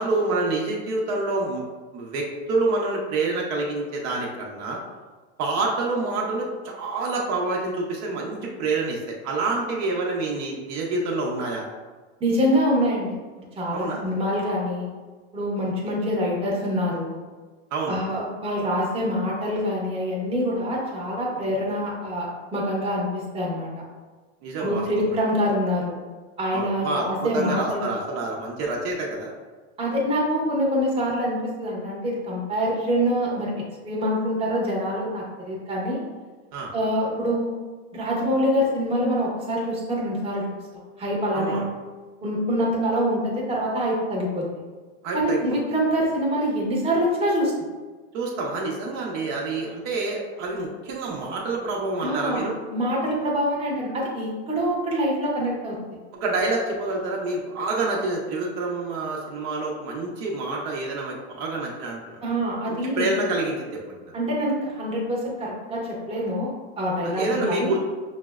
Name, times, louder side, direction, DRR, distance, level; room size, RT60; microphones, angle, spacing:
voice 1, 0.0-1.6 1.9-4.8 5.4-11.6 13.7-14.0 17.7-18.0 24.4-25.1 26.5-29.3 36.5-36.7 41.3-41.6 45.0-45.4 48.1-52.5 56.1-62.2 62.7-64.1 67.0-67.8, right 2 dB, 55° right, -2 dB, 0.7 m, -27 dB
voice 2, 12.2-13.2 13.6-14.9 15.3-17.2 17.9-23.1 23.3-23.7 24.6-26.0 26.4-27.9 29.8-33.5 33.8-36.0 36.7-37.5 37.9-40.4 41.0-41.6 42.2-44.4 45.1-47.5 52.0-55.8 62.2-63.1 64.1-67.8, equal, 15° right, -3 dB, 0.9 m, -25 dB
5.4 x 2.1 x 2.3 m, 1.3 s
supercardioid pair, 135°, 33 cm